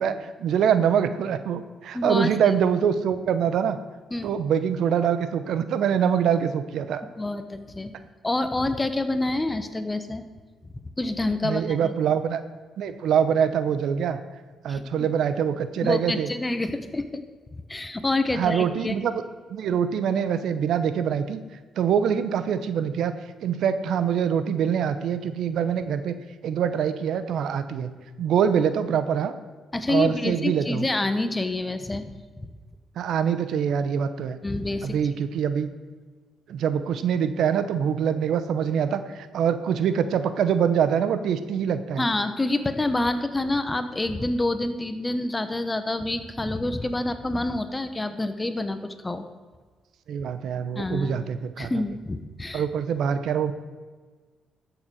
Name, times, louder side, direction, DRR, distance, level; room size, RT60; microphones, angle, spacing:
voice 1, 0.0-3.8 4.2-7.0 11.4-12.4 12.8-14.2 14.6-16.3 18.4-19.1 19.5-21.4 21.8-23.1 23.4-26.2 26.4-29.3 29.9-30.9 33.0-34.4 34.8-35.7 36.5-42.1 50.1-51.7 52.5-53.5, right 8 dB, 75° right, 11 dB, 0.8 m, -24 dB
voice 2, 1.9-2.3 4.1-4.3 7.2-7.9 8.2-10.2 11.0-11.9 14.7-14.8 15.8-17.2 17.7-18.9 29.7-32.2 32.4-32.5 34.4-35.0 42.0-49.2 50.7-51.2 51.6-52.6, left 2 dB, 20° left, 9 dB, 1.2 m, -27 dB
13.0 x 7.0 x 6.3 m, 1.4 s
cardioid pair, 70°, 0 cm